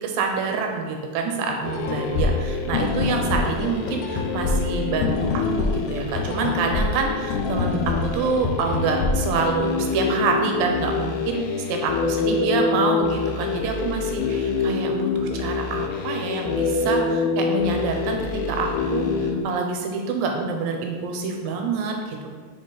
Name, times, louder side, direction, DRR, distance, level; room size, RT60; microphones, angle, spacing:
voice 1, 0.0-11.4 11.7-22.3, right 4 dB, 80° right, 3 dB, 2.3 m, -27 dB
sound 1, 1.6-19.4, left 4 dB, 90° left, 1.8 m, -25 dB
6.7 x 3.9 x 4.0 m, 1.5 s
omnidirectional pair, 4.3 m